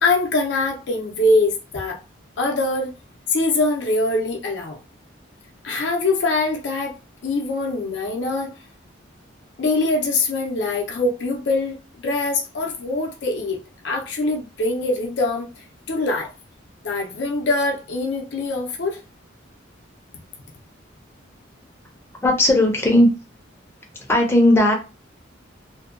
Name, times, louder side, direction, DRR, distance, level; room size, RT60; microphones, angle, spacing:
voice 1, 0.0-2.0 2.4-2.9 3.3-4.8 5.6-7.0 7.2-8.5 9.6-13.6 13.8-15.5 15.9-16.3 16.8-19.0, left 2 dB, 65° left, 0.5 m, -23 dB
voice 2, 22.2-23.1 24.1-24.7, left 1 dB, 10° left, 0.5 m, -16 dB
2.6 x 2.2 x 2.4 m
head